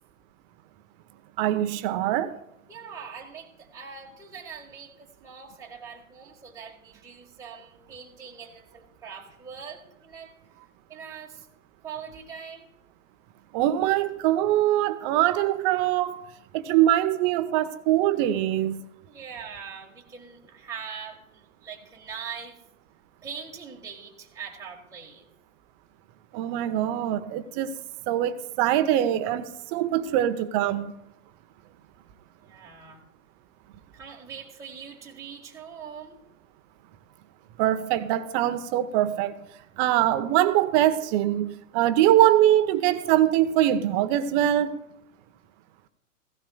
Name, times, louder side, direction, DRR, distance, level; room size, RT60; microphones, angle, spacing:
voice 1, 1.4-2.3 13.5-16.2 16.5-18.8 26.3-27.7 28.1-30.9 37.6-39.4 39.8-44.8, right 12 dB, 35° right, 0.9 m, -23 dB
voice 2, 2.7-10.3 10.9-11.5 11.8-12.7 19.0-22.6 23.2-25.3 32.4-33.0 33.9-36.2, right 6 dB, 10° right, 1.6 m, -42 dB
16.0 x 16.0 x 2.3 m
hypercardioid pair, 115°, 41 cm